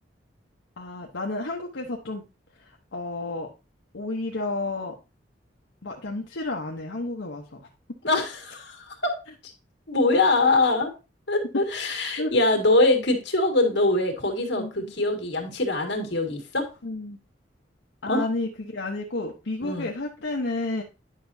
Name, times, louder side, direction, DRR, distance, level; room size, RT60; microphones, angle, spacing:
voice 1, 0.8-2.2 2.6-3.5 3.9-4.9 5.8-7.7 12.2-12.3 14.6-14.7 16.8-17.2 18.0-20.8, left 2 dB, 85° left, 0 dB, 0.9 m, -31 dB
voice 2, 8.0-9.2 9.9-10.9 11.3-16.7 18.1-18.2 19.6-19.9, left 2 dB, 65° left, 4 dB, 1.9 m, -23 dB
10.0 x 5.7 x 2.7 m, 0.29 s
head